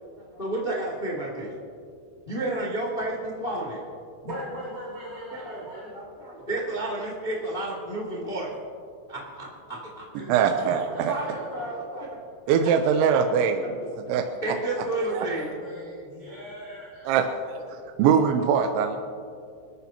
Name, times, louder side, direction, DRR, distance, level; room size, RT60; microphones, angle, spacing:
voice 1, 0.2-1.5 2.3-3.8 5.3-8.5 9.1-10.0 10.9-12.1 14.4-15.5 17.8-17.9, right 1 dB, 70° left, -3 dB, 0.5 m, -31 dB
voice 2, 4.2-5.8 10.2-11.8 14.6-17.2, equal, 45° right, -9 dB, 5.4 m, -40 dB
voice 3, 10.3-11.2 12.5-13.8 14.1-14.3 15.1-15.2 17.1-17.3 18.0-19.0, right 7 dB, 80° right, 5 dB, 2.9 m, -22 dB
27.0 x 13.5 x 2.9 m, 2.4 s
omnidirectional pair, 5.7 m